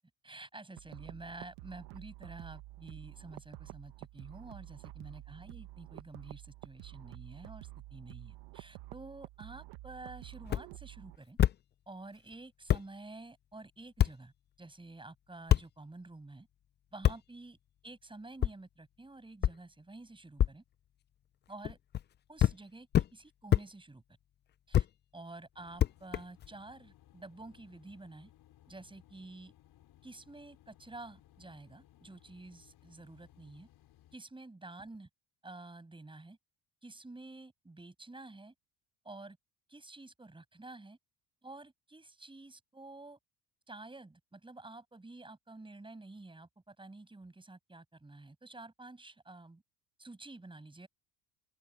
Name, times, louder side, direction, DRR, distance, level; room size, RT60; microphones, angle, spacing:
voice 1, 0.2-11.4 11.9-14.3 14.6-16.5 16.9-17.6 17.8-20.6 21.5-21.8 22.3-24.0 24.7-24.9 25.1-28.3 28.7-29.5 30.0-33.7 34.1-35.1 35.4-36.4 36.8-38.5 39.0-39.4 39.7-41.0 41.4-43.2 43.7-49.6 50.0-50.9, right 2 dB, 10° right, 7.6 m, -50 dB
sound 1, 0.8-11.2, right 18 dB, 70° right, 1.4 m, -50 dB
sound 2, 10.4-10.6 11.4-11.6 12.3-12.4 12.7-12.8 14.0-14.1 15.5-15.6 17.0-17.2 18.4-18.5 19.4-19.5 20.4-20.5 21.6-22.0 22.4-22.6 22.9-23.1 23.5-23.6 24.7-24.9 25.8-26.5, left 11 dB, 25° left, 0.4 m, -26 dB
sound 3, 25.5-34.1, left 13 dB, 60° left, 5.6 m, -62 dB
open air
cardioid pair, 110°, 43 cm